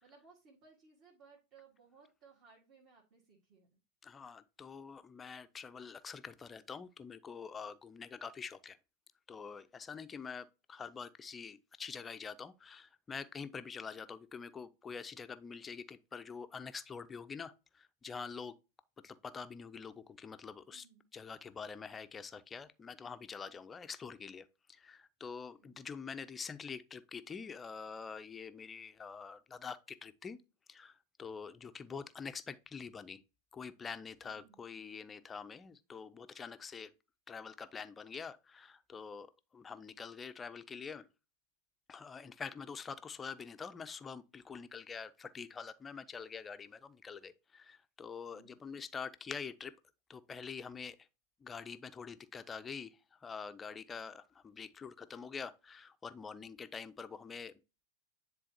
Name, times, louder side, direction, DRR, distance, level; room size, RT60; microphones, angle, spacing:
voice 1, 0.0-3.8 20.7-21.1 25.5-25.8 31.6-31.9 34.2-34.6 48.3-48.6, right 5 dB, 35° right, 1.9 m, -63 dB
voice 2, 4.0-8.8 9.3-18.5 19.0-20.8 21.1-30.4 30.7-33.2 33.5-36.9 37.3-41.1 41.9-49.7 50.1-51.0 51.4-57.5, left 5 dB, 15° left, 0.5 m, -46 dB
10.0 x 3.8 x 2.8 m
figure-of-eight pair, 90°, 0 cm